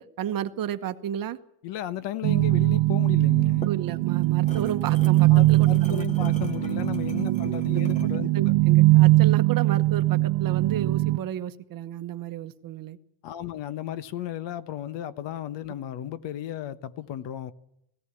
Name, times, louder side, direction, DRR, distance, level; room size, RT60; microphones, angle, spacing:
voice 1, 0.0-1.4 3.7-6.1 7.3-7.8 8.2-13.0, right 10 dB, 45° right, 1.1 m, -32 dB
voice 2, 1.6-3.6 5.3-8.3 13.2-17.5, left 11 dB, 60° left, 1.2 m, -34 dB
sound 1, 2.2-11.2, right 19 dB, 75° right, 0.9 m, -21 dB
sound 2, 3.4-8.2, left 1 dB, 15° left, 2.0 m, -41 dB
17.5 x 16.5 x 9.8 m
cardioid pair, 135°, 48 cm